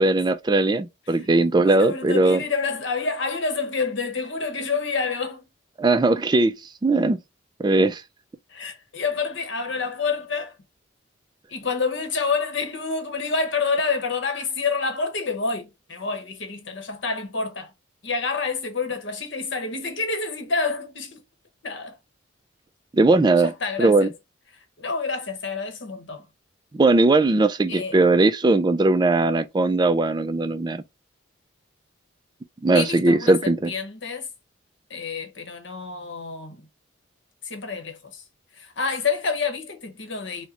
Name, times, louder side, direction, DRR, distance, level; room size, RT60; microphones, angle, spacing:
voice 1, 0.0-2.4 5.8-6.5 6.8-7.2 7.6-8.0 22.9-23.5 23.8-24.1 26.7-30.8 32.6-33.7, right 2 dB, 20° right, 0.3 m, -19 dB
voice 2, 1.6-5.5 8.5-10.6 11.5-17.7 18.0-21.2 21.6-22.0 23.4-24.1 24.5-26.3 27.7-28.1 32.7-34.3 34.9-36.7 37.4-38.2 38.5-40.5, left 4 dB, 65° left, 0.9 m, -28 dB
3.7 x 2.1 x 2.7 m
head